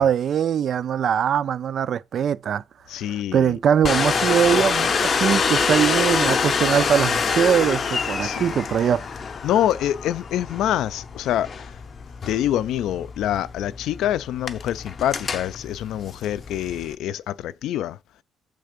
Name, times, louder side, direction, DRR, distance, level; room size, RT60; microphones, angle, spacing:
voice 1, 0.0-2.6 3.1-9.0, right 8 dB, 45° right, 0.3 m, -21 dB
voice 2, 2.9-3.6 8.2-8.6 9.4-11.7 12.3-18.0, left 11 dB, 75° left, 0.4 m, -26 dB
Domestic sounds home sounds, 3.8-16.9, left 5 dB, 35° left, 0.6 m, -26 dB
6.6 x 3.4 x 5.1 m
cardioid pair, 160°, 0 cm